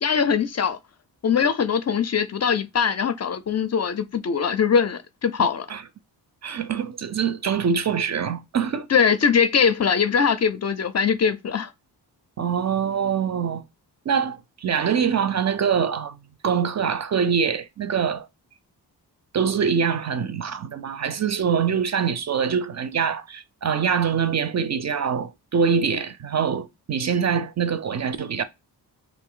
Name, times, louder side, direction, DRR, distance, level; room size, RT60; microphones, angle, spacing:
voice 1, 0.0-0.8 1.2-5.7 8.9-11.7, left 6 dB, 40° left, 0.4 m, -21 dB
voice 2, 5.4-5.8 6.4-8.9 12.4-13.6 14.1-18.3 19.3-28.4, right 7 dB, 40° right, 0.4 m, -24 dB
2.5 x 2.4 x 3.7 m
cardioid pair, 70°, 41 cm